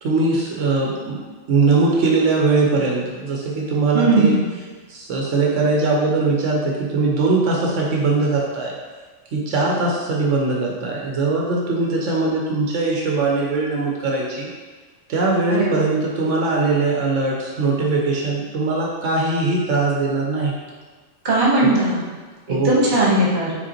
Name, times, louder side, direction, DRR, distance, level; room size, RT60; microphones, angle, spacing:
voice 1, 0.0-1.2 1.5-4.4 4.9-8.8 9.3-14.5 15.1-20.5 21.6-21.8 22.5-22.8, right 3 dB, 80° right, -2 dB, 1.0 m, -21 dB
voice 2, 3.9-4.4 15.5-15.8 21.2-22.0 22.5-23.6, right 2 dB, 40° right, -5 dB, 1.2 m, -18 dB
4.9 x 3.7 x 2.9 m, 1.3 s
omnidirectional pair, 1.3 m